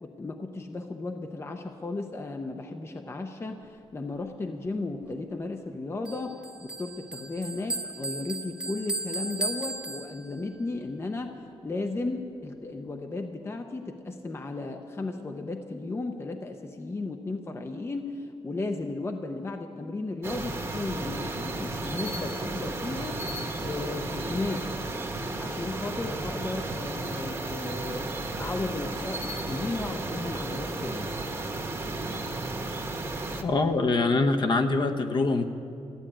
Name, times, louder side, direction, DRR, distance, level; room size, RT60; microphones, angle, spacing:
voice 1, 0.0-23.2 23.6-24.7 25.4-31.1, left 2 dB, 25° left, 5 dB, 0.7 m, -35 dB
Bell, 6.1-10.6, right 2 dB, 10° right, 0.9 m, -36 dB
sound 1, 20.2-33.4, right 2 dB, 25° right, 1.2 m, -33 dB
voice 2, 33.4-35.5, left 3 dB, 45° left, 5 dB, 0.9 m, -24 dB
14.5 x 9.6 x 8.8 m, 2.6 s
wide cardioid pair, 140°, 10 cm